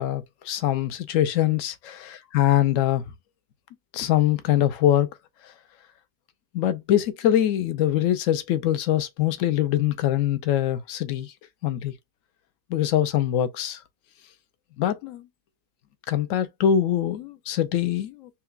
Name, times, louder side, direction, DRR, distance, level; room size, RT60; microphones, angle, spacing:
voice 1, 0.0-3.0 3.9-5.1 6.5-11.3 11.6-11.9 12.7-13.8 14.8-15.2 16.1-18.3, left 11 dB, 65° left, 0.9 m, -23 dB
5.7 x 2.3 x 2.4 m
omnidirectional pair, 1.7 m